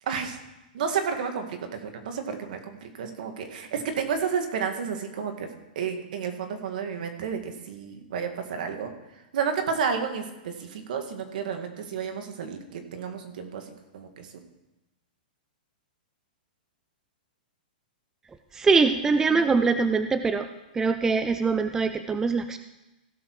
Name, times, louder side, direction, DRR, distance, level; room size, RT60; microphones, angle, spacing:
voice 1, 0.0-0.4 0.7-5.5 5.8-14.3 19.3-19.6, right 6 dB, 65° right, 5 dB, 2.0 m, -31 dB
voice 2, 18.5-20.5 20.7-22.6, right 4 dB, 10° right, 9 dB, 0.4 m, -23 dB
16.5 x 6.9 x 4.7 m, 0.99 s
hypercardioid pair, 145°, 5 cm